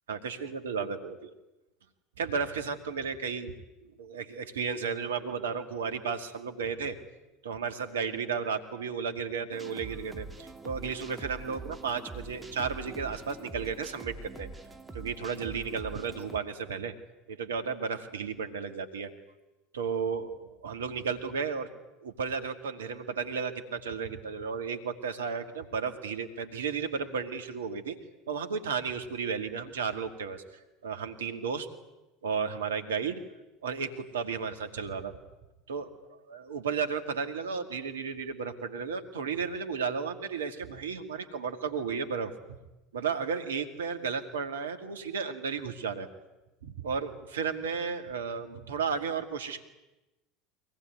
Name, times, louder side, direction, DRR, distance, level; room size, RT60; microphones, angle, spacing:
voice 1, 0.1-1.3 2.2-3.5 3.8-7.0 7.4-14.5 14.9-16.9 17.3-19.1 19.7-21.7 22.0-28.0 28.3-30.4 30.8-31.7 32.2-33.2 33.6-35.2 35.7-42.6 42.9-46.1 46.6-49.6, right 5 dB, 80° right, 7 dB, 2.2 m, -33 dB
sound 1, 9.5-16.4, right 3 dB, 15° right, 2.8 m, -44 dB
23.5 x 19.0 x 9.5 m, 1.0 s
hypercardioid pair, 75°, 0 cm